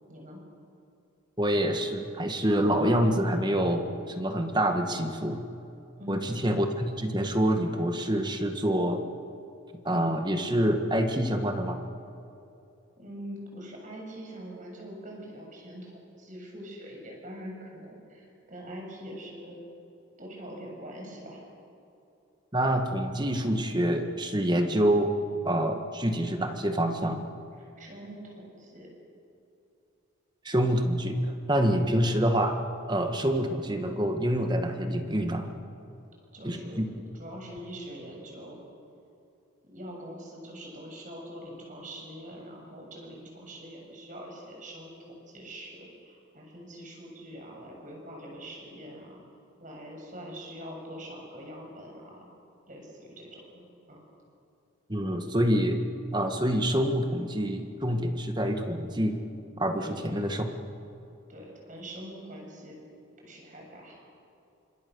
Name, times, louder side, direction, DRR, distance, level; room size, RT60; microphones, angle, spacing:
voice 1, 0.1-0.4 6.0-6.3 13.0-19.6 20.2-21.5 27.5-28.9 31.8-32.0 36.3-36.8 37.1-38.6 39.6-45.0 45.3-49.2 49.6-52.3 52.7-54.1 59.8-60.3 61.3-62.8 63.2-64.1, equal, 35° right, 0 dB, 7.1 m, -44 dB
voice 2, 1.4-5.4 6.1-9.0 9.8-11.8 22.5-25.1 25.4-27.2 30.4-32.5 32.9-35.5 36.4-36.9 54.9-55.8 56.1-59.2 59.6-60.5, equal, 20° right, 5 dB, 1.7 m, -26 dB
29.0 x 26.0 x 7.0 m, 2.7 s
head